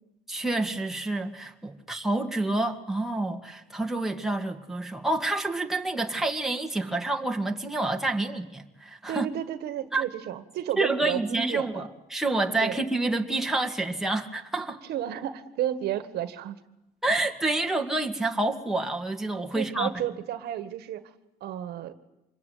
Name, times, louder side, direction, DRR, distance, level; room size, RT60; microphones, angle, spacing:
voice 1, 0.3-9.3 9.9-10.0 10.8-14.8 17.0-19.9, right 2 dB, ahead, 2.1 m, -28 dB
voice 2, 9.1-11.8 12.6-12.8 14.9-16.6 19.5-21.0 21.4-21.9, right 11 dB, 70° right, 1.6 m, -32 dB
25.5 x 21.5 x 9.5 m
cardioid pair, 110°, 17 cm